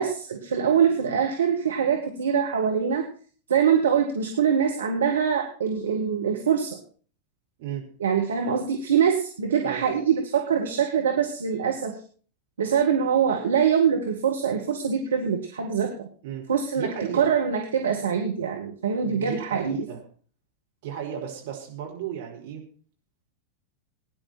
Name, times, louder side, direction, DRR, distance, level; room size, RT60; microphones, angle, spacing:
voice 1, 0.0-3.0 3.5-6.8 8.0-11.9 12.6-16.1 16.5-16.9 17.1-19.8, right 7 dB, 65° right, 2 dB, 1.7 m, -24 dB
voice 2, 16.7-17.3 19.0-20.0 20.8-22.6, right 9 dB, 50° right, 0 dB, 4.7 m, -34 dB
18.0 x 10.0 x 4.4 m, 0.43 s
figure-of-eight pair, 90°, 0 cm